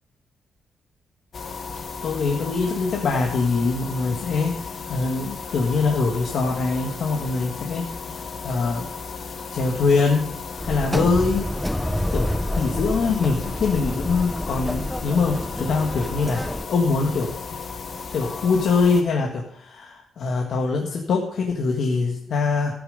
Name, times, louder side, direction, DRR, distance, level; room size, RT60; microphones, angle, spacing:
sound 1, 1.3-19.0, left 5 dB, 40° left, 1.2 m, -35 dB
voice 1, 2.0-7.9 8.2-8.9 9.5-10.3 10.6-11.5 12.1-17.6 18.1-22.7, left 4 dB, 55° left, 0 dB, 1.9 m, -23 dB
sound 2, 10.6-16.7, left 1 dB, 5° left, 0.5 m, -28 dB
14.5 x 9.3 x 5.4 m, 0.74 s
wide cardioid pair, 180°, 0 cm